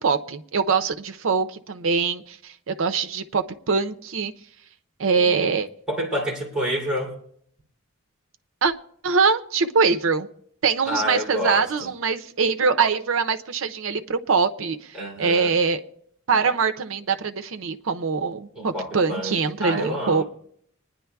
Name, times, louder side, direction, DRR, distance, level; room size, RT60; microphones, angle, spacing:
voice 1, 0.0-4.3 5.0-5.7 8.6-8.7 9.0-10.3 10.6-15.8 16.3-20.2, right 5 dB, 65° right, 0.6 m, -23 dB
voice 2, 5.2-5.6 5.9-7.2 10.8-11.9 14.9-15.5 18.5-20.2, equal, 5° right, 3.1 m, -28 dB
25.5 x 10.0 x 2.3 m
head